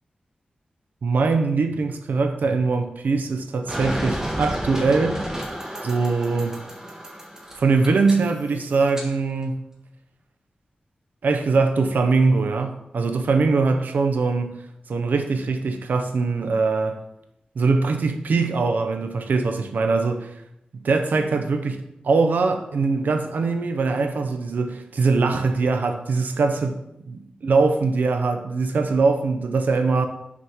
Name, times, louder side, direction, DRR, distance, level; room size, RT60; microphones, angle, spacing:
voice 1, 1.0-5.2 5.8-6.6 7.6-9.6 11.2-14.6 14.9-17.0 17.5-20.3 20.7-26.8 27.4-30.1, right 4 dB, 85° right, 0.8 m, -22 dB
sound 1, 3.7-9.1, equal, 20° right, 1.5 m, -32 dB
6.2 x 4.6 x 5.6 m
wide cardioid pair, 105°, 3 cm